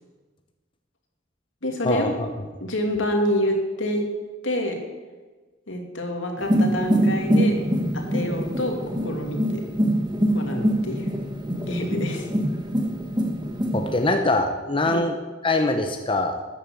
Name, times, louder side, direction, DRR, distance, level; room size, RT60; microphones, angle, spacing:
voice 1, 1.6-2.2 2.6-4.1 4.4-4.8 5.7-7.5 7.9-9.6 10.3-11.1 11.7-12.3 14.9-15.0, left 1 dB, 75° left, 3 dB, 2.6 m, -27 dB
sound 1, 6.4-14.1, right 1 dB, 20° right, 1.7 m, -24 dB
voice 2, 13.7-15.1 15.4-16.4, left 2 dB, 25° left, 5 dB, 0.9 m, -23 dB
13.5 x 9.4 x 6.9 m, 1.3 s
head